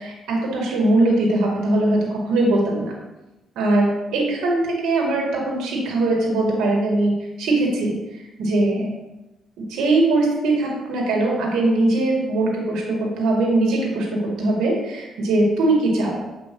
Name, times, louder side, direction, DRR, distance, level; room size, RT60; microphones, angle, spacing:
voice 1, 0.0-2.9 3.6-7.1 7.4-8.9 9.6-16.2, right 2 dB, 90° right, -1 dB, 1.8 m, -21 dB
8.0 x 5.1 x 3.0 m, 1.0 s
cardioid pair, 90°, 0 cm